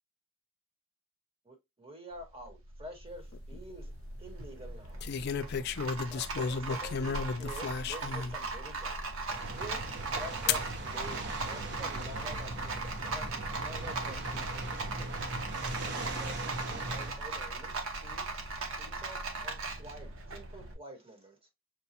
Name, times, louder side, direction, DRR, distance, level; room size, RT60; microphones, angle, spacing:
voice 1, 1.4-3.9 4.2-5.0 5.6-5.7 6.1-9.0 9.5-15.4 15.9-17.8 18.0-18.3 18.6-21.5, right 1 dB, 25° right, 1.2 m, -48 dB
Rattle, 2.1-20.7, right 3 dB, 80° right, 0.9 m, -39 dB
sound 1, 3.3-3.8 5.0-8.3 9.0-9.1 10.5-10.7 11.6-12.1, left 6 dB, 50° left, 0.3 m, -33 dB
sound 2, 9.3-17.1, right 2 dB, 55° right, 0.7 m, -39 dB
6.2 x 2.3 x 2.7 m
head